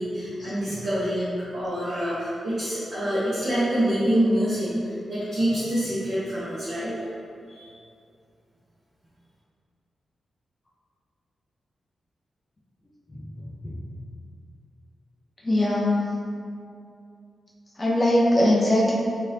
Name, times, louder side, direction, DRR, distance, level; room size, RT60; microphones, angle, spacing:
voice 1, 0.0-6.9 7.5-7.7, equal, 50° right, -13 dB, 0.9 m, -26 dB
voice 2, 13.1-13.9 15.4-16.1 17.8-19.0, left 1 dB, 20° left, -5 dB, 0.3 m, -22 dB
3.2 x 2.6 x 2.7 m, 2.4 s
wide cardioid pair, 170°, 0 cm